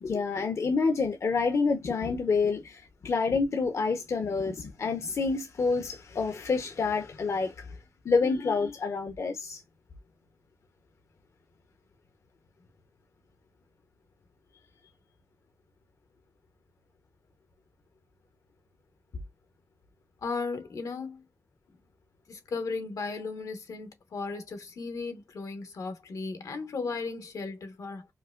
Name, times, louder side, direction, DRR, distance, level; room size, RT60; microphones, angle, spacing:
voice 1, 0.0-7.7 8.0-9.6, left 4 dB, 55° left, 0.6 m, -28 dB
voice 2, 20.2-21.2 22.3-28.1, left 4 dB, 80° left, 0.9 m, -36 dB
4.6 x 2.1 x 2.2 m
wide cardioid pair, 125°, 6 cm